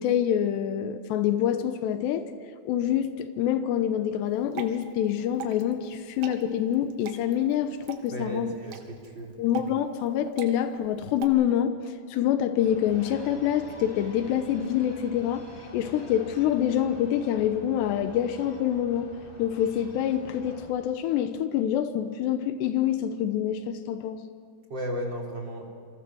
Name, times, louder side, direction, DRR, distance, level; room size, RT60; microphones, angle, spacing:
voice 1, 0.0-2.3 2.7-8.5 9.4-11.8 12.1-15.5 15.7-24.2, left 10 dB, 90° left, 9 dB, 3.2 m, -26 dB
Water / Drip, 4.3-11.3, right 9 dB, 90° right, 3.8 m, -43 dB
voice 2, 8.1-9.3 24.7-25.7, right 1 dB, 30° right, -1 dB, 4.0 m, -34 dB
sound 1, 12.6-20.7, left 1 dB, 40° left, 5.0 m, -47 dB
28.5 x 25.0 x 6.3 m, 2.4 s
omnidirectional pair, 4.8 m